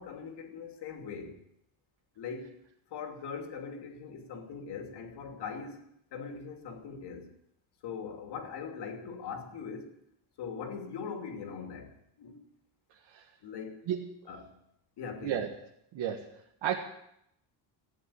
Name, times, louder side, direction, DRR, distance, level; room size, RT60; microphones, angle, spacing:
voice 1, 0.0-1.4 2.2-2.6 2.9-5.8 6.1-7.3 7.8-9.9 10.4-12.4 13.4-13.8 14.3-14.6 15.0-15.4, left 6 dB, 55° left, 2.9 m, -41 dB
voice 2, 15.9-16.3 16.6-16.8, right 9 dB, 70° right, 1.9 m, -32 dB
15.5 x 10.0 x 8.7 m
cardioid pair, 170°, 47 cm